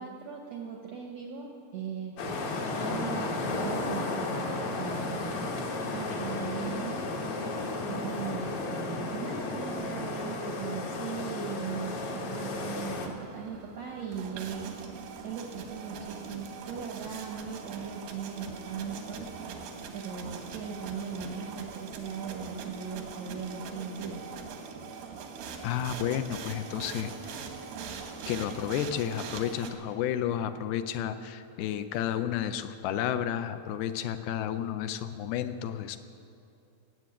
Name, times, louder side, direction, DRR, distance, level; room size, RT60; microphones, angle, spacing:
voice 1, 0.0-2.5 2.8-5.3 5.9-7.1 7.9-14.8 15.2-19.3 19.9-24.2, right 6 dB, 70° right, 0 dB, 1.6 m, -39 dB
sound 1, 2.2-13.1, left 2 dB, 55° left, 2.3 m, -33 dB
sound 2, 13.0-29.7, right 5 dB, 85° right, 3.2 m, -42 dB
voice 2, 25.6-27.4 28.3-36.0, left 10 dB, 80° left, 10 dB, 2.4 m, -32 dB
17.5 x 7.8 x 8.6 m, 2.6 s
omnidirectional pair, 4.4 m